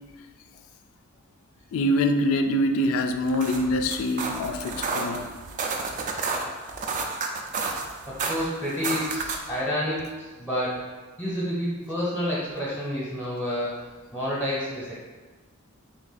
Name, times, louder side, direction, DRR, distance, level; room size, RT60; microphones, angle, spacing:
voice 1, 1.7-5.3, left 1 dB, 70° left, 7 dB, 0.3 m, -24 dB
sound 1, 3.1-9.6, right 4 dB, 35° right, 0.3 m, -31 dB
voice 2, 8.1-10.9 11.2-13.8 14.1-14.9, equal, 5° left, -8 dB, 0.7 m, -29 dB
3.3 x 2.5 x 3.9 m, 1.3 s
head